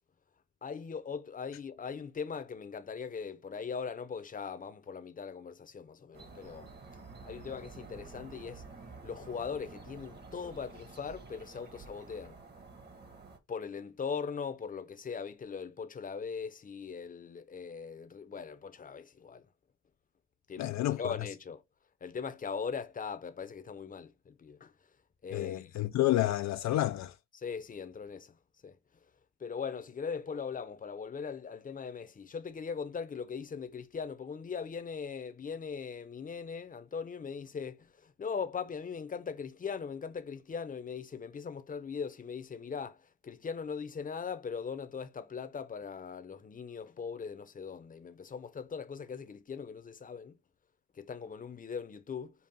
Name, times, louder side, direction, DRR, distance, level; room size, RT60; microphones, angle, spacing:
voice 1, 0.6-6.7 7.2-8.6 9.0-12.4 13.5-19.5 20.5-21.6 22.0-24.7 25.2-25.8 27.3-28.3 28.6-28.8 29.4-43.0 43.2-50.3 51.0-52.3, left 6 dB, 30° left, 0.7 m, -40 dB
sound 1, 6.1-13.4, right 4 dB, 35° right, 1.3 m, -50 dB
voice 2, 20.6-21.1 25.3-27.1, left 14 dB, 65° left, 0.4 m, -30 dB
5.3 x 2.3 x 4.2 m
cardioid pair, 90°, 30 cm